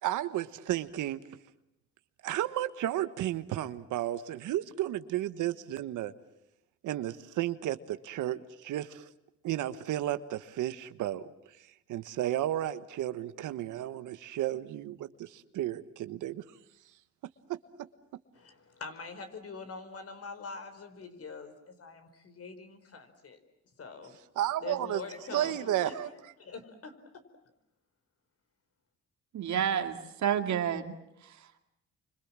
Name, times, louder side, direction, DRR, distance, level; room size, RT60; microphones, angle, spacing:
voice 1, 0.0-1.2 2.2-6.1 6.8-9.1 9.4-11.3 11.9-16.4 24.4-25.0 25.3-26.1, right 13 dB, 85° right, 12 dB, 1.4 m, -33 dB
voice 2, 18.3-23.4 23.8-24.1 24.6-25.9 26.4-26.9, left 4 dB, 50° left, 8 dB, 4.8 m, -44 dB
voice 3, 29.3-30.9, right 9 dB, 65° right, 6 dB, 2.5 m, -29 dB
30.0 x 25.5 x 7.5 m, 0.85 s
cardioid pair, 90°, 30 cm